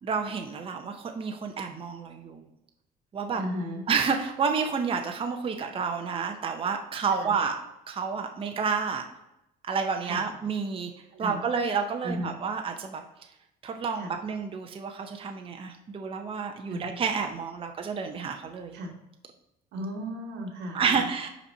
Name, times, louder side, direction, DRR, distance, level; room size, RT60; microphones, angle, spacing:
voice 1, 0.0-2.4 3.1-3.4 3.9-7.6 7.9-9.0 9.7-10.9 11.2-13.0 13.6-18.8 20.7-21.3, right 5 dB, 35° right, 4 dB, 0.7 m, -30 dB
voice 2, 3.3-3.8 7.2-7.3 10.0-10.2 11.1-11.4 12.0-12.3 13.9-14.1 16.7-17.0 18.7-18.9 19.7-21.1, equal, 90° right, 2 dB, 1.4 m, -35 dB
5.6 x 4.2 x 5.4 m, 0.87 s
cardioid pair, 110°, 17 cm